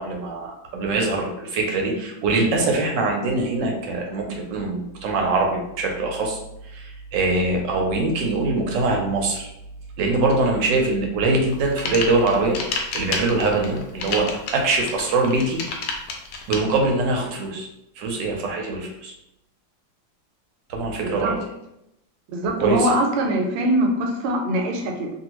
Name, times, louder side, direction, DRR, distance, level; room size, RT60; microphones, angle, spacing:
voice 1, 0.0-9.5 10.0-15.6 16.5-17.7 18.0-19.1 20.7-21.4 22.6-22.9, right 3 dB, 70° right, 1 dB, 1.2 m, -23 dB
sound 1, 11.5-16.6, left 4 dB, 80° left, 0.9 m, -29 dB
voice 2, 21.0-21.3 22.3-25.1, right 1 dB, 90° right, 2 dB, 1.5 m, -22 dB
2.8 x 2.7 x 2.9 m, 0.84 s
omnidirectional pair, 2.2 m